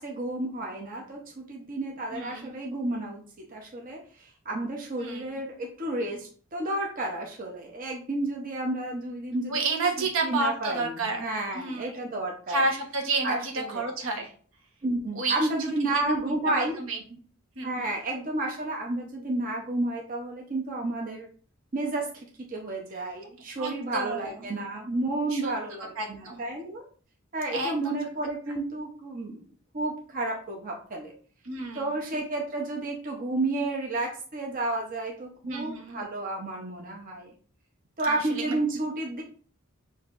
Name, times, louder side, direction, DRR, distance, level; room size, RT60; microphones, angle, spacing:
voice 1, 0.0-3.2 3.5-9.6 10.0-12.6 13.2-13.8 14.8-16.8 17.6-21.3 21.7-26.8 27.3-29.4 29.7-31.1 31.7-37.3 38.0-39.2, right 2 dB, 40° right, 0 dB, 0.8 m, -31 dB
voice 2, 2.1-2.6 5.0-5.3 9.5-11.2 11.5-12.1 12.5-14.3 15.1-15.4 15.9-17.2 17.6-17.9 23.6-24.3 25.3-25.5 26.0-26.5 27.5-27.7 31.4-31.9 35.4-36.0 38.0-38.6, right 3 dB, 75° right, 2 dB, 1.1 m, -30 dB
6.5 x 2.7 x 2.5 m, 0.43 s
head